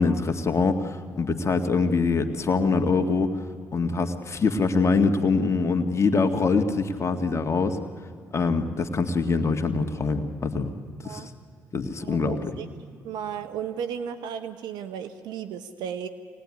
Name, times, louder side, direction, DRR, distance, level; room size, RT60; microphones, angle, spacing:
voice 1, 0.0-3.3 3.7-7.8 8.3-10.7 11.0-11.2 11.7-12.5, left 4 dB, 40° left, 6 dB, 2.1 m, -24 dB
voice 2, 12.0-12.7 13.0-16.1, right 8 dB, 75° right, 10 dB, 1.1 m, -34 dB
25.0 x 19.5 x 10.0 m, 2.3 s
hypercardioid pair, 50°, 7 cm